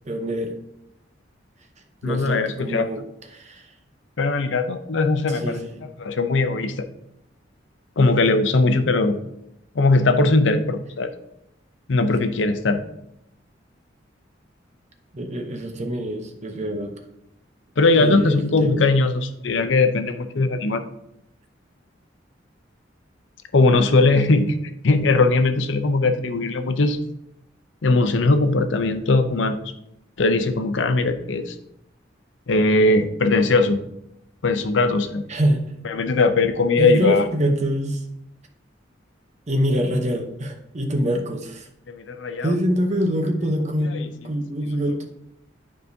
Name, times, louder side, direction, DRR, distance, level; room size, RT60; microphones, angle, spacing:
voice 1, 0.1-0.5 2.0-3.0 3.3-3.7 5.3-5.8 15.1-16.9 17.9-18.9 35.3-35.8 36.8-38.0 39.5-41.7 42.4-45.0, equal, 40° right, 4 dB, 0.8 m, -25 dB
voice 2, 2.0-2.9 4.2-5.6 6.0-6.8 8.0-9.2 9.7-11.1 11.9-12.8 17.8-20.8 23.5-24.6 24.8-27.0 27.8-29.6 30.2-31.6 32.5-33.8 34.4-35.2 35.8-37.3 41.9-42.6 44.6-44.8, left 3 dB, 75° left, 9 dB, 0.6 m, -19 dB
9.3 x 4.9 x 2.7 m, 0.80 s
head